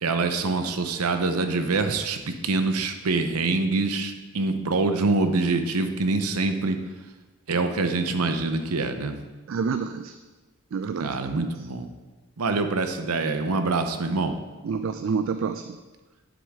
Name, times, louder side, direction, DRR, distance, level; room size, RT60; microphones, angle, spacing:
voice 1, 0.0-6.8 7.5-9.1 11.0-11.9 12.4-14.3, right 3 dB, 85° right, 8 dB, 0.7 m, -25 dB
voice 2, 9.5-10.1 10.7-11.5 14.6-15.6, right 5 dB, 60° right, 8 dB, 0.3 m, -28 dB
9.5 x 7.6 x 3.6 m, 1.2 s
head